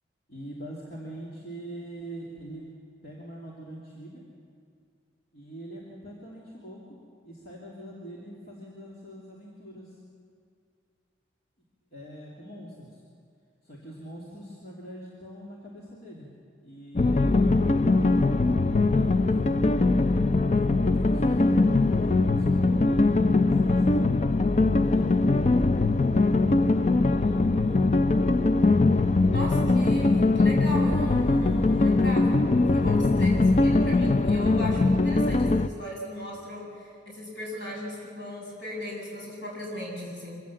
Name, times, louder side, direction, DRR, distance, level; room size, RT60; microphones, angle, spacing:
voice 1, 0.3-2.7 3.0-4.3 5.3-10.0 11.9-13.0 13.6-16.3 16.6-18.1 18.7-19.5 20.5-24.2 24.7-25.7 27.1-27.8, right 1 dB, 50° left, -5 dB, 2.9 m, -44 dB
sound 1, 17.0-35.7, left 3 dB, 35° left, 0.4 m, -22 dB
voice 2, 29.2-32.4 32.7-40.3, equal, 70° left, -2 dB, 7.7 m, -37 dB
25.0 x 17.0 x 7.5 m, 2.2 s
head